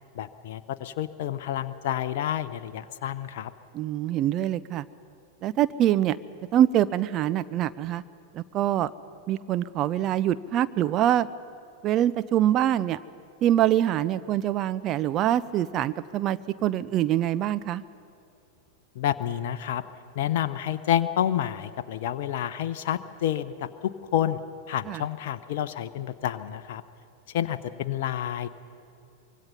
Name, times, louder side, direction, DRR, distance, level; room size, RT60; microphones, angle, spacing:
voice 1, 0.1-3.5 19.0-19.8 20.2-24.4 24.7-26.8 27.3-28.5, left 11 dB, 50° left, 11 dB, 0.7 m, -29 dB
voice 2, 3.7-4.9 5.4-6.2 6.5-8.0 8.3-8.9 9.3-11.3 11.8-13.0 13.4-17.8 24.9-25.0, right 12 dB, 35° right, 14 dB, 0.5 m, -24 dB
24.5 x 22.0 x 5.6 m, 2.6 s
figure-of-eight pair, 90°, 0 cm